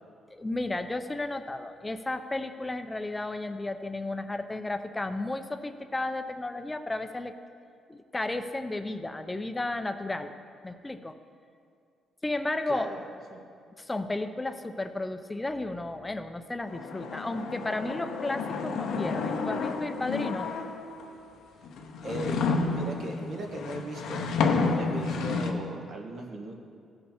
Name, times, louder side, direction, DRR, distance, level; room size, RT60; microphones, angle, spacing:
voice 1, 0.3-7.3 7.9-10.3 10.6-11.2 12.2-12.9 13.8-20.5, left 2 dB, 15° left, 9 dB, 0.6 m, -33 dB
voice 2, 12.7-13.0 13.3-13.4 22.0-22.4 22.7-26.6, right 1 dB, 60° right, 0 dB, 1.6 m, -38 dB
sound 1, 16.7-21.0 21.6-25.5, left 4 dB, 80° left, 0.8 m, -30 dB
16.0 x 5.5 x 4.4 m, 2.3 s
cardioid pair, 90°, 0 cm